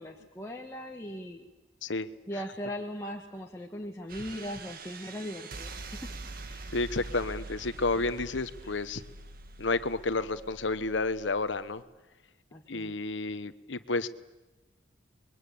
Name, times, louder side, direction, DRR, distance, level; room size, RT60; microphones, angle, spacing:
voice 1, 0.0-1.5 2.3-6.0 6.5-6.7 12.5-12.9, equal, 15° left, -1 dB, 1.7 m, -39 dB
sound 1, 4.1-11.8, right 3 dB, 50° right, 1.7 m, -44 dB
voice 2, 6.7-9.0 9.6-11.8 12.7-14.1, left 3 dB, 75° left, 14 dB, 1.1 m, -31 dB
30.0 x 22.5 x 8.7 m, 1.1 s
head